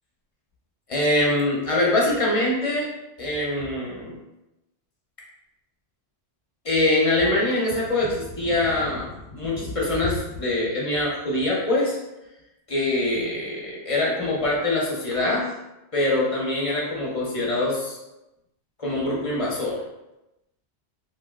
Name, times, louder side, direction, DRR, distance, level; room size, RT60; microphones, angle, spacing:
voice 1, 0.9-2.9 3.2-4.2 6.6-12.0 12.7-15.5 15.9-18.0 18.8-19.8, left 2 dB, 40° left, -4 dB, 0.6 m, -24 dB
3.0 x 2.7 x 2.3 m, 0.95 s
omnidirectional pair, 1.1 m